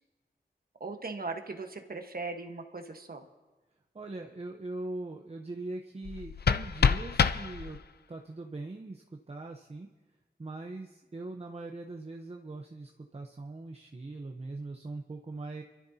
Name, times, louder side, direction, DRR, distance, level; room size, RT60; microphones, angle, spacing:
voice 1, 0.8-3.2, right 3 dB, 60° right, 5 dB, 1.3 m, -39 dB
voice 2, 3.9-7.8 8.1-9.9 10.4-15.6, right 2 dB, 35° right, 2 dB, 0.9 m, -41 dB
sound 1, 6.0-8.0, left 6 dB, 65° left, 0.5 m, -27 dB
27.5 x 13.0 x 2.8 m, 1.2 s
wide cardioid pair, 85°, 18 cm